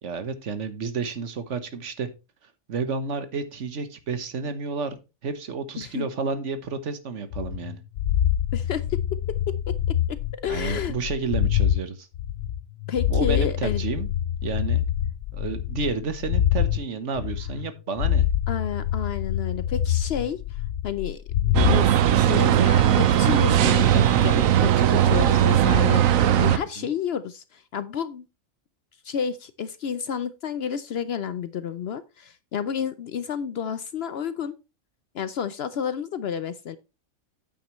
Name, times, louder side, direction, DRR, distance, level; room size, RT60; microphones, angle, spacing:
voice 1, 0.0-2.1 2.7-4.9 5.2-7.8 10.5-12.1 13.1-14.1 14.4-14.8 15.3-18.3 26.8-26.9, right 4 dB, 65° right, 11 dB, 1.4 m, -31 dB
voice 2, 5.8-6.1 8.5-9.0 9.3-10.9 12.9-13.9 18.5-28.2 29.0-34.6 35.1-36.8, left 7 dB, 60° left, 14 dB, 0.7 m, -31 dB
sound 1, 7.3-11.8 12.1-16.8 17.2-17.7 18.0-21.8, left 11 dB, 80° left, 1.0 m, -25 dB
sound 2, 21.5-26.6, right 10 dB, 80° right, 1.1 m, -19 dB
9.4 x 8.4 x 3.0 m, 0.28 s
omnidirectional pair, 1.4 m